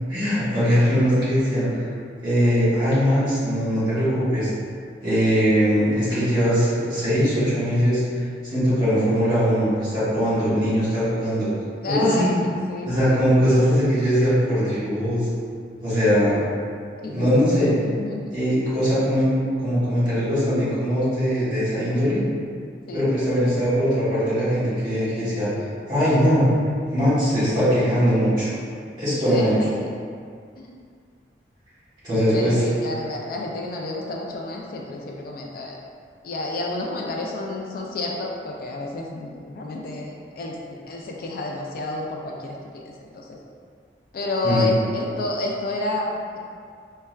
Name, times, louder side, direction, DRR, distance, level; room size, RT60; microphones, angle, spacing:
voice 1, 0.1-1.9 2.2-4.5 5.0-8.0 8.4-11.5 11.9-12.4 12.8-15.3 15.8-16.4 17.1-17.7 18.3-19.3 19.6-22.2 22.9-25.5 25.9-26.5 26.9-28.5 29.0-29.6 32.0-32.6 44.4-44.6, equal, 25° right, -11 dB, 1.4 m, -21 dB
voice 2, 11.8-12.3 12.7-13.2 17.0-18.3 22.9-23.0 29.3-30.1 30.6-30.7 32.3-35.8 36.2-43.4 44.1-46.4, left 2 dB, 55° left, -1 dB, 0.3 m, -30 dB
4.3 x 2.2 x 2.2 m, 2.2 s
head